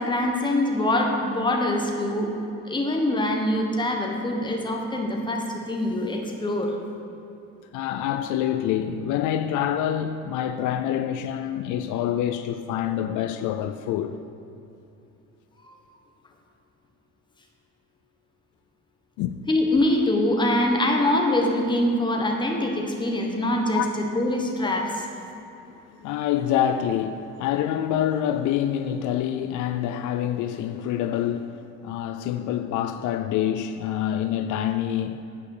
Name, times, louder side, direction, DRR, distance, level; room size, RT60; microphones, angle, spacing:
voice 1, 0.0-2.3 2.6-6.8 15.7-15.8 19.5-25.0, left 1 dB, 15° left, 1.2 m, -24 dB
voice 2, 7.7-14.2 19.2-19.3 23.7-23.9 25.3-25.5 26.0-35.2, left 10 dB, 75° left, 0.5 m, -26 dB
8.6 x 5.4 x 6.6 m
cardioid pair, 120°, 31 cm